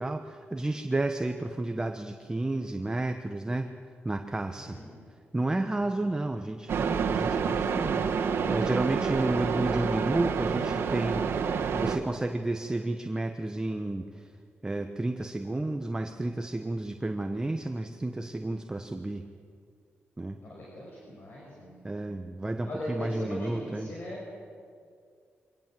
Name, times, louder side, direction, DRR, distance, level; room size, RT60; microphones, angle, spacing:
voice 1, 0.0-3.7 4.0-4.8 5.3-14.3 14.6-19.2 20.2-20.4 21.8-23.9, right 2 dB, 15° right, 6 dB, 1.1 m, -31 dB
voice 2, 4.6-5.0 5.7-6.0 20.4-21.8 22.7-24.2, left 1 dB, 55° left, -3 dB, 5.8 m, -39 dB
sound 1, 6.7-12.0, right 6 dB, 85° right, 1.7 m, -28 dB
24.0 x 18.5 x 7.7 m, 2.3 s
cardioid pair, 90°, 4 cm